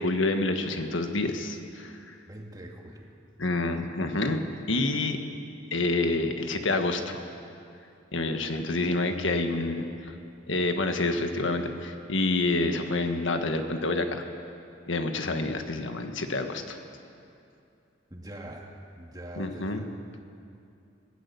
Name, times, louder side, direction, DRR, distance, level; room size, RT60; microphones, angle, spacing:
voice 1, 0.0-2.2 3.4-4.4 4.7-5.2 5.7-7.2 8.1-10.1 10.5-14.2 14.9-16.8 19.4-19.8, left 2 dB, 70° left, 6 dB, 1.6 m, -28 dB
voice 2, 2.3-3.1 18.1-19.8, right 1 dB, 20° right, 1 dB, 2.1 m, -43 dB
22.5 x 17.0 x 7.0 m, 2.6 s
head